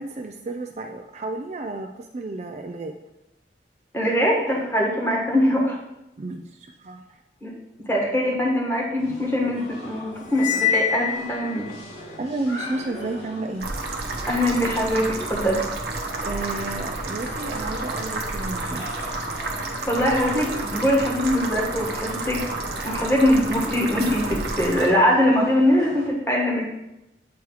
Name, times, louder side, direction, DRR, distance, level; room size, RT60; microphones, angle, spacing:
voice 1, 0.0-2.9 6.2-7.2 12.2-13.7 16.2-18.9, right 2 dB, 40° right, 4 dB, 0.4 m, -32 dB
voice 2, 3.9-5.8 7.4-7.5 7.8-11.7 14.3-15.6 19.9-22.4 22.8-26.6, equal, 15° left, -3 dB, 1.5 m, -22 dB
sound 1, 9.0-26.1, left 1 dB, 75° left, 2.1 m, -40 dB
Cymbal, 10.3-11.8, left 8 dB, 45° left, 0.5 m, -25 dB
sound 2, 13.6-24.9, right 2 dB, 60° right, 0.9 m, -30 dB
8.0 x 3.1 x 4.7 m, 0.92 s
head